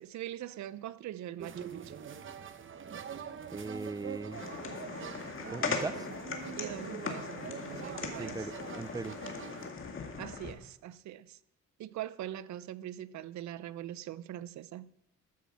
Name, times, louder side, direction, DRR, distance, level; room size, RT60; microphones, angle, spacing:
voice 1, 0.0-2.0 6.6-7.4 7.7-8.5 10.2-11.4 11.8-14.9, right 12 dB, 65° right, 0.6 m, -42 dB
sound 1, 1.4-9.7, right 7 dB, 40° right, 0.9 m, -44 dB
voice 2, 3.5-4.4 5.5-6.1 8.2-9.2, right 3 dB, 15° right, 0.4 m, -39 dB
sound 2, 4.3-10.5, left 5 dB, 45° left, 1.9 m, -39 dB
13.0 x 6.2 x 7.2 m
cardioid pair, 90°, 30 cm